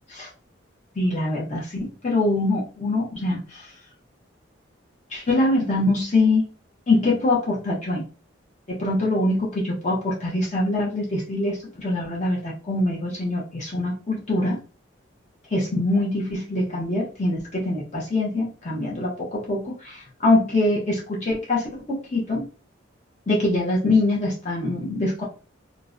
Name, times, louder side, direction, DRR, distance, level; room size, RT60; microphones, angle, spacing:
voice 1, 1.0-3.7 5.1-6.4 6.9-8.0 8.7-14.6 15.5-22.4 23.3-25.2, left 2 dB, 35° left, -5 dB, 0.5 m, -24 dB
2.5 x 2.0 x 2.3 m, 0.37 s
head